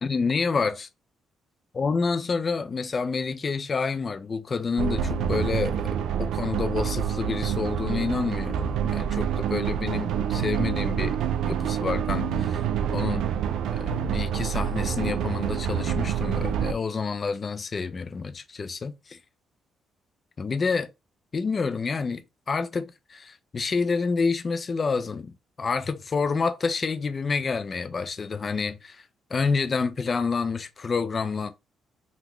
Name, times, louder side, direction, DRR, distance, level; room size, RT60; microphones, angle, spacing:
voice 1, 0.0-0.9 1.7-11.2 11.4-13.3 13.7-18.9 20.4-20.9 21.3-22.2 22.5-29.0 29.3-31.5, left 4 dB, 40° left, 0.4 m, -28 dB
sound 1, 4.8-16.7, right 8 dB, 80° right, 0.3 m, -27 dB
3.9 x 2.2 x 3.0 m
cardioid pair, 90°, 0 cm